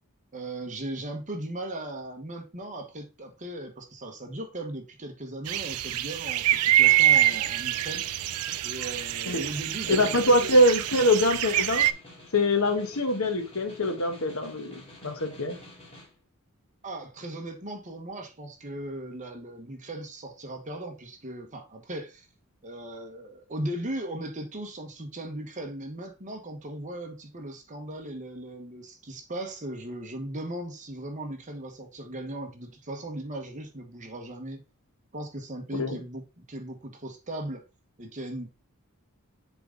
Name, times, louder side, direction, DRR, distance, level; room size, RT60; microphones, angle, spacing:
voice 1, 0.3-8.2 8.6-10.5 16.8-22.3 22.6-34.6 35.1-37.6 38.0-38.5, right 1 dB, 35° right, 1.2 m, -38 dB
sound 1, 5.5-11.9, right 13 dB, 85° right, 0.4 m, -25 dB
Snare drum, 6.5-16.1, left 1 dB, 25° left, 2.5 m, -50 dB
voice 2, 9.9-11.9 12.3-15.5 35.7-36.0, left 1 dB, 70° left, 1.2 m, -24 dB
7.1 x 3.8 x 3.8 m
head